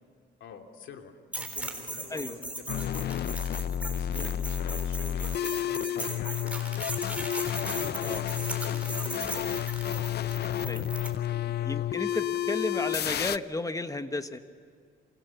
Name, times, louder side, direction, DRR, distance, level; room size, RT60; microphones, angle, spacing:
voice 1, 0.4-3.3 3.8-7.0 7.5-9.5 9.9-12.2 12.7-12.8, left 6 dB, 75° left, 4 dB, 2.8 m, -47 dB
sound 1, 1.3-11.1, right 1 dB, 5° right, 3.7 m, -38 dB
sound 2, 2.7-13.4, left 11 dB, 55° left, 0.6 m, -31 dB
voice 2, 11.6-14.4, left 2 dB, 15° left, 9 dB, 1.4 m, -33 dB
28.5 x 27.5 x 7.1 m, 2.1 s
cardioid pair, 90°, 20 cm